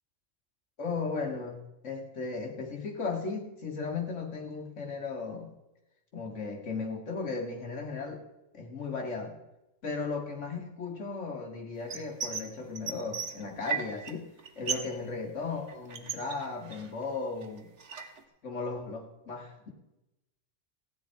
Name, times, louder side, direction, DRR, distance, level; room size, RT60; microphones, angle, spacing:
voice 1, 0.8-5.5 6.1-8.2 8.5-9.4 9.8-14.3 14.6-17.7 18.4-19.7, left 4 dB, 70° left, 1 dB, 2.1 m, -36 dB
sound 1, 11.9-12.5 12.7-14.1 14.4-15.0 15.2-17.0 17.4-18.2, right 6 dB, 70° right, 1.4 m, -36 dB
15.0 x 9.6 x 4.6 m, 0.93 s
omnidirectional pair, 1.3 m